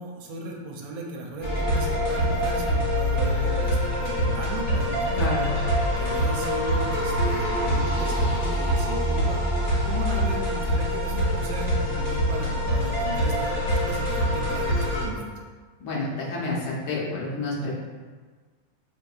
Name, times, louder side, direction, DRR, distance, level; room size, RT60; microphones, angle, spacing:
voice 1, 0.0-5.3 6.0-9.4 9.8-15.3, right 2 dB, 85° right, 0 dB, 1.4 m, -36 dB
sound 1, 1.4-15.1, equal, 40° left, 1.0 m, -25 dB
voice 2, 5.1-5.5 15.8-17.7, left 2 dB, 65° left, -4 dB, 1.4 m, -29 dB
5.7 x 2.7 x 2.3 m, 1.5 s
omnidirectional pair, 2.1 m